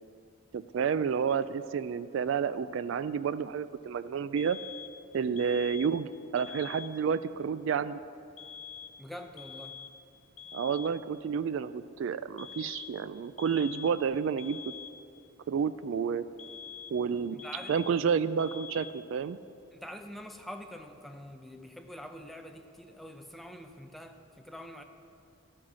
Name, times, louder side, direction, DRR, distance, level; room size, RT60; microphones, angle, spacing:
voice 1, 0.5-4.6 5.1-8.0 10.5-14.6 15.5-16.2 16.9-17.4 17.7-19.4, right 6 dB, 65° right, 15 dB, 0.3 m, -30 dB
sound 1, 4.4-5.0 5.4-6.0 6.4-7.0 8.4-9.1 9.4-10.0 10.4-11.0 12.4-13.0 13.4-14.1 14.4-15.1 16.4-17.1 17.4-18.1 18.4-19.1, left 7 dB, 85° left, 0.8 m, -45 dB
voice 2, 9.0-9.9 17.3-17.8 19.7-24.8, equal, ahead, 5 dB, 0.6 m, -45 dB
12.5 x 8.8 x 6.1 m, 2.6 s
head